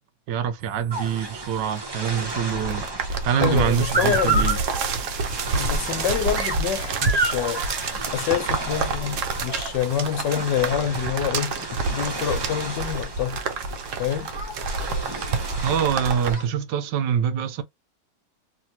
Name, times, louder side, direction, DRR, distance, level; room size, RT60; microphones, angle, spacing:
voice 1, 0.3-2.9 3.2-4.6 15.6-17.6, right 8 dB, 80° right, 1.3 m, -25 dB
sound 1, 0.6-16.4, right 4 dB, 65° right, 0.8 m, -29 dB
sound 2, 0.9-16.5, right 2 dB, 35° right, 0.4 m, -32 dB
voice 2, 3.4-4.5 5.5-7.6 8.1-11.5 11.9-13.4 14.0-14.3, left 9 dB, 75° left, 1.3 m, -26 dB
3.3 x 2.6 x 2.7 m
omnidirectional pair, 2.0 m